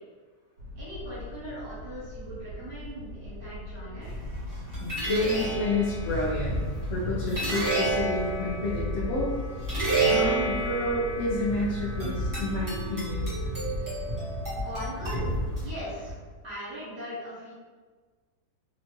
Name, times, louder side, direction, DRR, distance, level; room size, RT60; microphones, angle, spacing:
sound 1, 0.6-12.5, left 1 dB, 80° right, 1.1 m, -43 dB
voice 1, 0.7-4.2 14.5-15.3 15.6-16.1 16.4-17.5, equal, 40° right, -11 dB, 1.4 m, -39 dB
sound 2, 4.0-16.1, right 1 dB, 15° right, 0.9 m, -30 dB
voice 2, 4.8-6.6 6.9-9.3 10.0-13.3, left 1 dB, 65° left, -9 dB, 0.8 m, -29 dB
2.9 x 2.3 x 3.0 m, 1.4 s
omnidirectional pair, 1.8 m